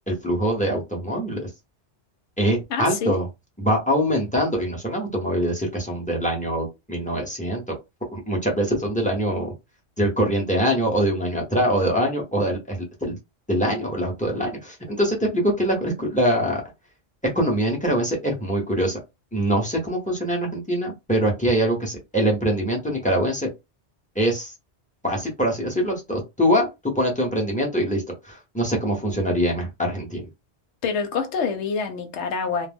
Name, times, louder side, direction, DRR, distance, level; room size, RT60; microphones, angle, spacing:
voice 1, 0.1-1.5 2.4-3.3 3.6-7.8 8.1-9.5 10.0-13.2 13.5-16.6 17.2-19.0 19.3-23.5 24.1-24.5 25.0-30.2, equal, 10° left, 0.6 m, -23 dB
voice 2, 2.7-3.2 30.8-32.7, left 5 dB, 85° left, 0.9 m, -26 dB
2.3 x 2.0 x 3.4 m
omnidirectional pair, 1.2 m